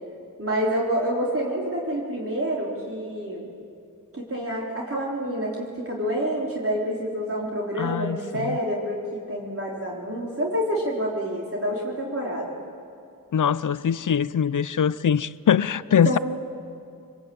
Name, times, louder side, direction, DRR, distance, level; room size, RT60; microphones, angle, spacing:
voice 1, 0.4-3.5 4.1-12.6 16.0-16.2, equal, 40° right, 3.9 m, -28 dB
voice 2, 7.8-8.6 13.3-16.2, left 8 dB, 60° left, 0.6 m, -22 dB
24.5 x 21.5 x 8.7 m
wide cardioid pair, 75°, 35 cm